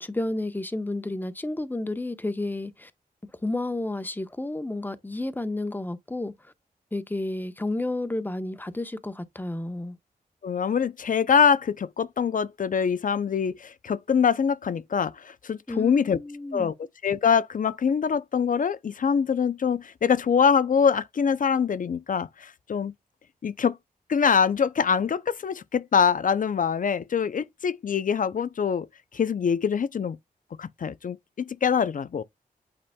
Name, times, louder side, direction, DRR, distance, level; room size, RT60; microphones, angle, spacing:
voice 1, 0.0-2.9 3.4-6.3 6.9-10.0 15.7-16.7, left 2 dB, 10° left, 1.0 m, -31 dB
voice 2, 10.4-16.2 16.5-16.7 17.0-22.9 23.4-23.8 24.1-28.9 29.1-30.2 30.6-32.2, left 6 dB, 60° left, 0.6 m, -24 dB
8.7 x 4.9 x 2.3 m
wide cardioid pair, 85°, 15 cm